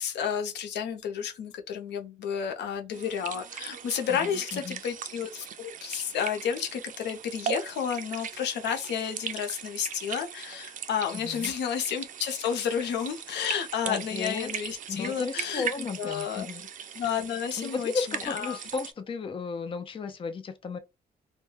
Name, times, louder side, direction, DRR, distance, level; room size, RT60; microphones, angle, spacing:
voice 1, 0.0-16.5 16.9-18.6, left 8 dB, 85° left, 0.6 m, -31 dB
sound 1, 2.9-18.9, right 8 dB, 50° right, 0.4 m, -39 dB
voice 2, 4.1-4.8 11.1-11.5 13.8-14.5 14.9-16.7 17.6-20.8, left 4 dB, 30° left, 0.4 m, -34 dB
2.2 x 2.1 x 3.1 m
cardioid pair, 95°, 17 cm